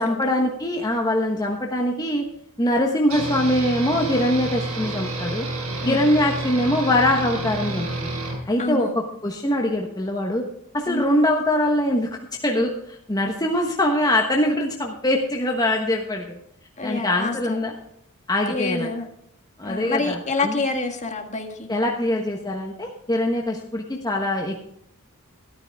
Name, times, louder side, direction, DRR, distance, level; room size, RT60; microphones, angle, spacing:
voice 1, 0.0-2.2 2.6-5.5 5.8-8.1 8.5-8.9 9.2-10.4 10.7-12.1 12.4-16.4 16.8-17.7 18.3-18.9 19.6-20.6 21.7-24.6, left 1 dB, 20° left, 0 dB, 1.2 m, -23 dB
sound 1, 3.1-8.4, right 2 dB, 85° right, 5.4 m, -29 dB
voice 2, 8.6-9.0 10.9-11.0 16.8-17.6 18.5-19.0 19.6-21.7, left 3 dB, 35° left, 4 dB, 1.7 m, -27 dB
13.0 x 12.0 x 3.6 m, 0.76 s
head